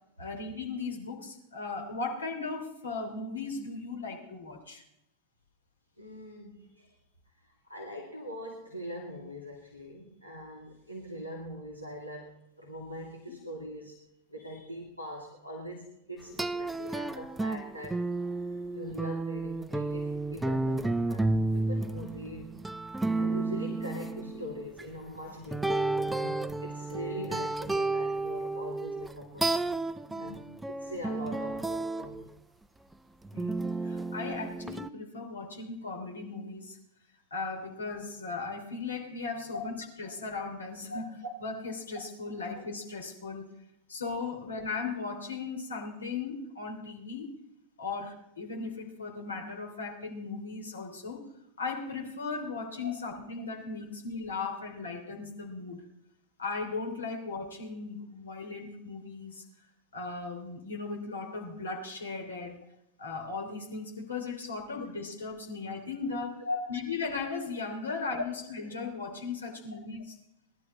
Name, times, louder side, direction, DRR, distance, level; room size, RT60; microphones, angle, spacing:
voice 1, 0.2-4.8 13.3-13.4 30.1-30.4 33.3-36.8 37.3-39.7 40.0-41.1 41.4-43.5 43.9-47.3 47.8-51.3 51.6-55.8 56.4-59.4 59.9-62.6 63.0-70.0, left 4 dB, 70° left, 2 dB, 3.1 m, -37 dB
voice 2, 6.0-7.0 7.4-14.0 14.3-18.1 18.7-22.5 23.2-29.5 30.2-32.2 39.5-39.6 40.9-41.0 52.8-52.9 66.4-66.7, equal, 90° left, -2 dB, 2.3 m, -42 dB
sound 1, 16.4-24.8 25.5-32.3 33.2-34.9, right 2 dB, 5° right, 0.5 m, -32 dB
19.5 x 12.0 x 4.2 m, 0.81 s
figure-of-eight pair, 90°, 0 cm